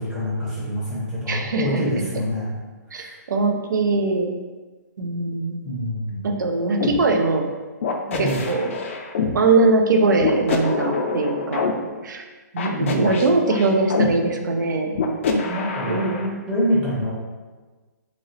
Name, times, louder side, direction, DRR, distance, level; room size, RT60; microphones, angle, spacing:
voice 1, 0.0-2.5 2.9-3.2 5.6-6.3 8.1-8.4 12.6-13.1 15.3-16.0 16.5-17.1, equal, 5° right, -9 dB, 0.7 m, -26 dB
voice 2, 1.3-1.8 2.9-4.3 5.0-5.6 6.2-7.5 8.2-8.7 9.3-11.7 12.0-12.3 12.5-14.9 15.9-16.4, right 3 dB, 85° right, 4 dB, 0.5 m, -21 dB
sound 1, 6.8-7.0 7.8-9.3 10.2-11.7 12.6-14.1 14.9-16.3, left 5 dB, 45° left, 0.3 m, -25 dB
3.0 x 2.8 x 2.7 m, 1.3 s
hypercardioid pair, 160°, 10 cm